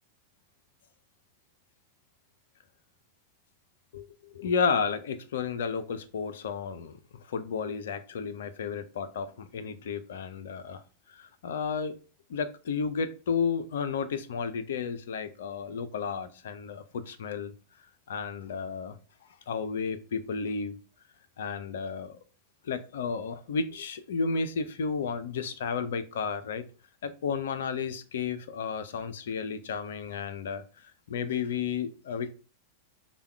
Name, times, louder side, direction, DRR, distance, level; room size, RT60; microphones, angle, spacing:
voice 1, 4.3-10.8 11.1-12.0 12.3-17.5 18.1-19.0 19.5-20.8 21.4-22.2 22.6-26.6 27.0-32.3, left 5 dB, 60° left, 0.4 m, -32 dB
3.4 x 2.2 x 4.3 m
figure-of-eight pair, 90°, 0 cm